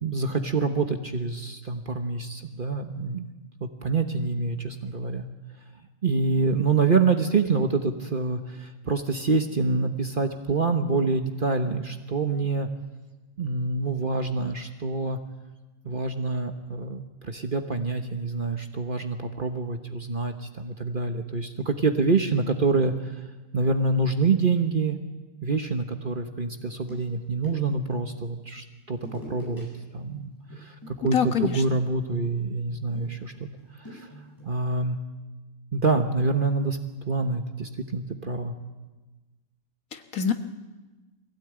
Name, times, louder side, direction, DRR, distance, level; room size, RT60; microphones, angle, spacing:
voice 1, 0.0-3.3 3.8-5.2 6.0-12.7 13.4-15.2 15.8-22.9 23.5-25.0 25.4-29.7 29.9-33.3 33.9-34.1 34.4-35.0 35.7-38.5, right 4 dB, 40° right, 6 dB, 1.2 m, -26 dB
sound 1, 26.9-27.9 28.9-29.6 29.9-30.2 30.5-34.5, equal, 15° left, 8.1 m, -46 dB
voice 2, 31.1-31.8 39.9-40.3, left 8 dB, 75° left, 7 dB, 1.8 m, -26 dB
23.0 x 16.5 x 9.0 m, 1.2 s
omnidirectional pair, 1.5 m